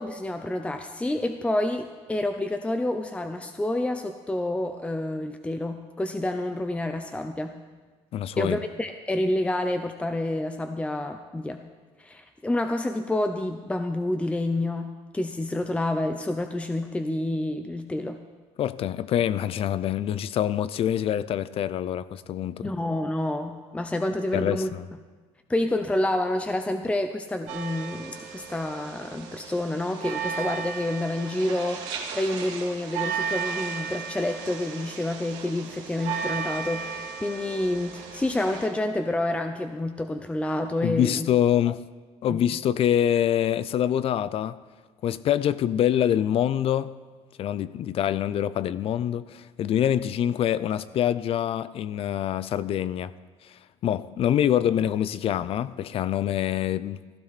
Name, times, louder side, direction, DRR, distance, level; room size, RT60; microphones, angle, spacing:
voice 1, 0.0-7.5 8.4-11.6 12.0-18.2 22.6-24.7 25.5-41.3 42.3-42.4, left 1 dB, 10° left, 0.7 m, -28 dB
voice 2, 8.1-8.6 18.6-22.7 24.3-24.9 40.8-41.8 42.2-44.6 45.0-46.9 47.4-53.1 53.8-57.0, left 10 dB, 55° left, 0.6 m, -25 dB
sound 1, 27.5-38.7, right 6 dB, 85° right, 2.6 m, -35 dB
15.5 x 14.0 x 4.2 m
cardioid pair, 105°, 12 cm